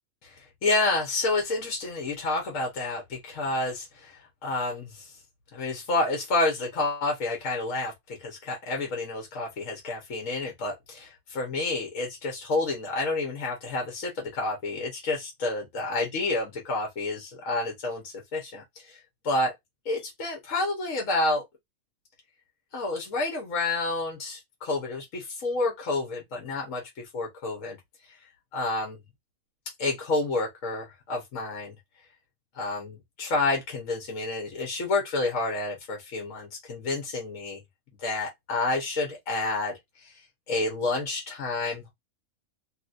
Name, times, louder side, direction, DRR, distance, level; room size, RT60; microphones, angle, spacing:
voice 1, 0.2-5.1 5.5-19.5 19.8-21.4 22.7-27.8 28.5-29.0 29.8-31.7 32.5-37.6 38.0-40.1 40.5-41.9, left 2 dB, 70° left, 1.4 m, -29 dB
3.1 x 2.9 x 2.5 m
omnidirectional pair, 1.4 m